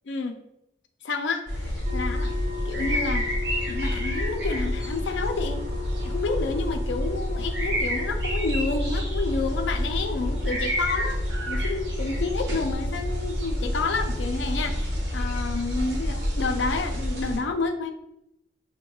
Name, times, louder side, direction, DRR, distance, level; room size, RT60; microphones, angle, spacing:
voice 1, 0.1-0.4 1.0-3.3 3.7-5.7 6.0-11.2 11.5-17.9, left 3 dB, 90° left, 6 dB, 0.4 m, -30 dB
sound 1, 1.5-17.4, equal, 85° right, 0.9 m, -28 dB
sound 2, 1.8-14.4, left 8 dB, 35° right, 0.3 m, -40 dB
5.3 x 2.2 x 2.3 m, 0.83 s
head